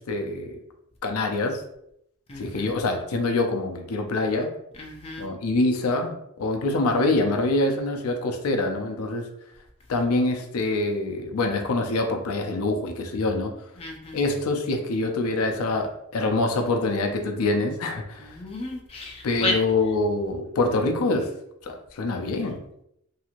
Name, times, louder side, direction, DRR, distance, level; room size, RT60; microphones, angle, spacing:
voice 1, 0.1-0.6 1.0-1.6 2.4-4.5 5.2-9.3 9.9-13.5 14.1-18.4 19.2-21.3 21.6-22.6, left 2 dB, 85° left, 4 dB, 0.5 m, -25 dB
voice 2, 2.3-2.6 4.8-5.3 13.8-14.2 18.2-19.6, left 2 dB, 25° left, -1 dB, 0.4 m, -32 dB
2.9 x 2.7 x 2.5 m, 0.77 s
head